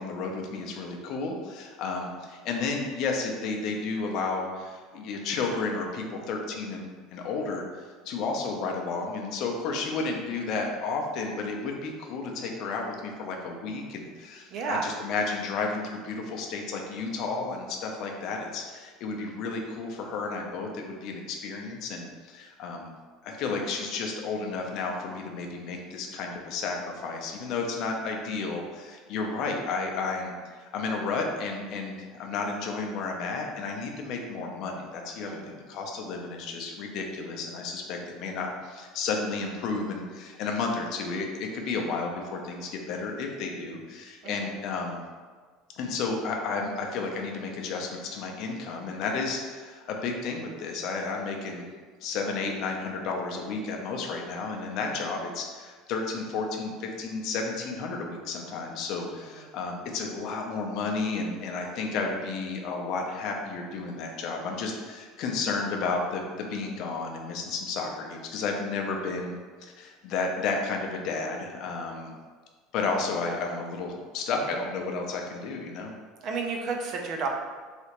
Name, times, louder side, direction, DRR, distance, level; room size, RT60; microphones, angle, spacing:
voice 1, 0.0-22.9 23.2-26.8 27.0-45.0 45.8-51.7 52.0-72.1 72.7-75.9, left 4 dB, 50° left, 2 dB, 0.5 m, -32 dB
voice 2, 14.5-14.9 35.3-35.6 44.2-44.5 54.8-55.1 76.2-77.3, right 4 dB, 40° right, 2 dB, 0.4 m, -32 dB
3.2 x 2.9 x 2.9 m, 1.5 s
cardioid pair, 160°, 0 cm